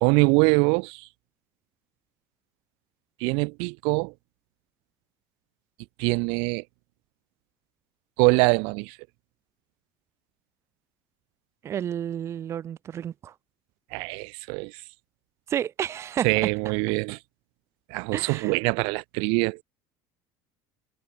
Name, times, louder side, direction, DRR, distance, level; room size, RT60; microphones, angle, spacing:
voice 1, 0.0-1.1 3.2-4.1 6.0-6.6 8.2-9.0 13.9-14.7 16.2-17.2 17.9-19.6, right 34 dB, 70° right, 0.4 m, -23 dB
voice 2, 11.6-13.3 15.5-16.3 18.1-18.5, right 10 dB, 30° right, 1.2 m, -31 dB
cardioid pair, 170°, 10 cm